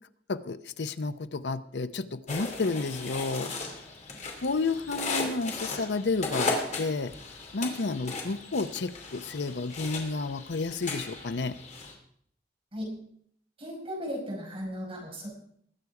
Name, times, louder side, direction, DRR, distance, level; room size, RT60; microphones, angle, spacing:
voice 1, 0.3-3.5 4.4-7.1 7.5-11.6, left 3 dB, 70° left, 13 dB, 0.7 m, -31 dB
sound 1, 2.3-11.9, left 3 dB, 40° left, 2.8 m, -36 dB
voice 2, 13.6-15.3, equal, 30° right, -2 dB, 5.6 m, -36 dB
21.0 x 8.4 x 4.8 m, 0.66 s
head